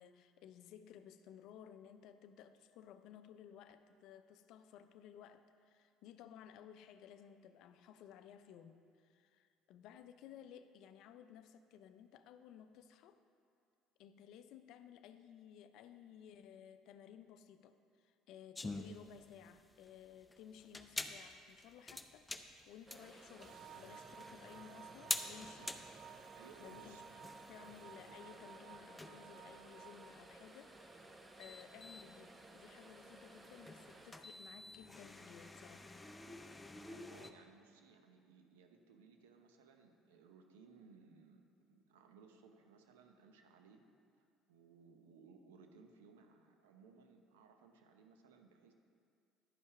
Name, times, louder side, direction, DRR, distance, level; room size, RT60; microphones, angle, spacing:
voice 1, 0.0-13.2 14.0-25.9 26.2-30.8 31.4-35.9, left 9 dB, 70° left, 10 dB, 0.4 m, -57 dB
sound 1, 18.5-37.3, left 2 dB, 15° left, 0.6 m, -48 dB
sound 2, 22.9-34.1, right 2 dB, 25° right, 0.9 m, -58 dB
sound 3, 23.4-30.1, right 8 dB, 60° right, 0.3 m, -56 dB
voice 2, 26.4-27.1 36.9-43.8 44.2-48.7, right 5 dB, 90° right, 5 dB, 0.7 m, -62 dB
10.5 x 5.6 x 4.7 m, 2.3 s
hypercardioid pair, 70°, 0 cm